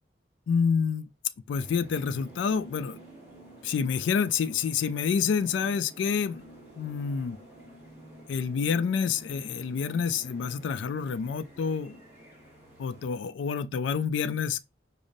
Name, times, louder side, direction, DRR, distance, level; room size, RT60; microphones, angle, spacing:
voice 1, 0.5-1.1 1.5-3.0 3.6-6.4 6.8-7.4 8.3-12.0 12.8-14.6, left 6 dB, 75° left, 0.3 m, -28 dB
sound 1, 1.5-13.1, right 1 dB, 15° right, 1.9 m, -50 dB
5.0 x 2.0 x 2.6 m
head